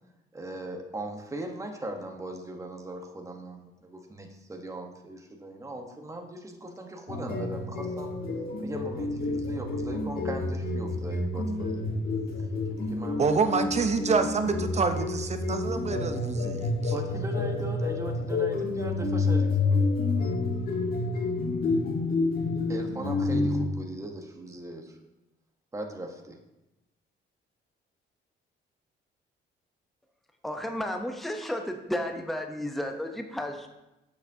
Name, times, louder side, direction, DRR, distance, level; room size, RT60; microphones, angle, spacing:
voice 1, 0.3-8.1 8.6-12.0 12.7-13.2 14.0-14.1 16.9-20.1 22.7-25.0 25.7-26.4, right 1 dB, 15° right, 3 dB, 1.1 m, -39 dB
sound 1, 7.1-23.7, left 3 dB, 50° left, 1.4 m, -29 dB
voice 2, 13.2-16.9, right 4 dB, 35° right, 8 dB, 0.7 m, -27 dB
voice 3, 30.4-33.7, left 1 dB, ahead, 4 dB, 0.7 m, -33 dB
7.9 x 6.9 x 2.7 m, 0.97 s
cardioid pair, 90°, 20 cm